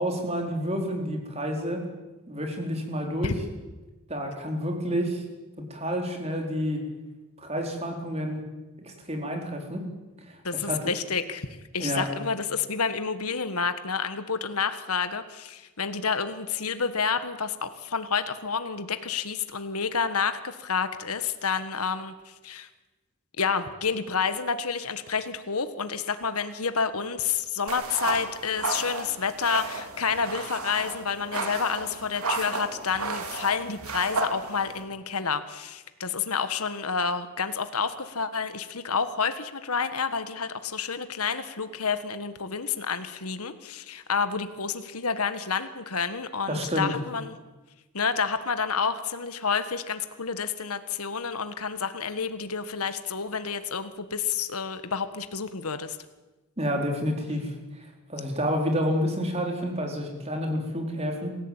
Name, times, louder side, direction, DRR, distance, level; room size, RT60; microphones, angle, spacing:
voice 1, 0.0-1.8 2.3-3.3 4.1-5.2 5.7-6.8 7.4-8.4 8.8-9.8 10.3-10.4 10.6-10.9 11.8-12.1 46.5-46.9 56.6-57.5 58.1-61.4, equal, 30° right, 3 dB, 4.2 m, -29 dB
voice 2, 10.4-11.5 11.7-22.7 23.4-47.3 47.9-56.0, left 5 dB, 85° left, 10 dB, 1.6 m, -29 dB
sound 1, 27.7-34.8, right 3 dB, 80° right, 3.7 m, -33 dB
27.5 x 16.0 x 8.9 m, 1.1 s
head